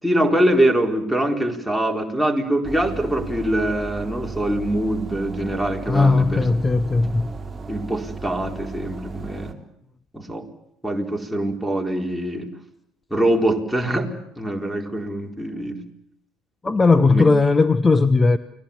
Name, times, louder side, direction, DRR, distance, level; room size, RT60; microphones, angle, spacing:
voice 1, 0.0-6.5 7.7-9.5 10.1-10.5 10.8-12.5 13.1-15.8 16.7-17.3, right 1 dB, ahead, 0 dB, 4.5 m, -23 dB
sound 1, 2.6-9.5, right 3 dB, 20° right, 3.8 m, -35 dB
voice 2, 5.9-7.3 16.6-18.4, left 3 dB, 25° left, 13 dB, 1.1 m, -17 dB
29.0 x 20.5 x 7.2 m, 0.77 s
hypercardioid pair, 65°, 0 cm